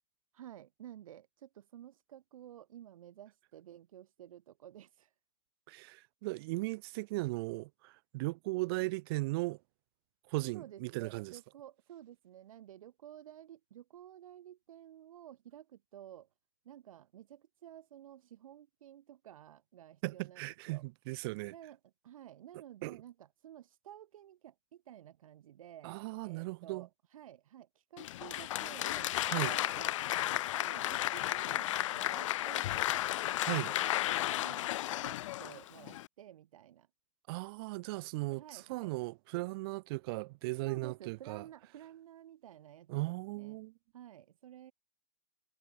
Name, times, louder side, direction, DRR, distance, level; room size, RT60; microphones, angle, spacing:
voice 1, 0.3-5.1 10.5-16.3 16.6-20.8 21.5-29.1 29.4-33.1 33.5-34.7 35.0-36.9 38.3-38.9 40.6-43.6 43.9-44.7, right 11 dB, 70° right, 1.6 m, -53 dB
voice 2, 5.7-9.6 10.3-11.3 20.0-21.5 22.8-23.0 25.8-26.9 29.2-29.6 33.4-33.7 37.3-41.4 42.9-43.7, right 23 dB, 45° right, 0.5 m, -37 dB
Applause, 28.0-36.1, left 15 dB, 60° left, 0.9 m, -34 dB
hypercardioid pair, 125°, 18 cm